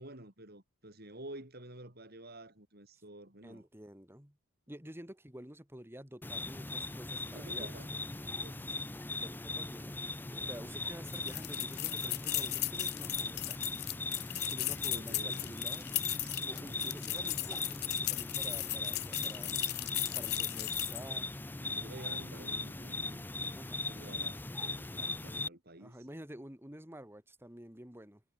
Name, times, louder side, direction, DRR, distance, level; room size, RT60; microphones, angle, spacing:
voice 1, 0.0-3.6 7.3-7.9 8.4-8.7 14.9-15.6 16.2-17.0 21.6-26.0, right 1 dB, 50° right, 5.8 m, -51 dB
voice 2, 3.4-4.4 4.7-7.8 8.7-13.7 14.5-15.9 16.4-19.7 20.1-21.3 23.6-23.8 25.0-25.2 25.8-28.2, right 1 dB, 10° right, 2.7 m, -50 dB
sound 1, 6.2-25.5, left 3 dB, 10° left, 0.5 m, -39 dB
sound 2, 11.1-21.1, left 17 dB, 55° left, 0.7 m, -37 dB
head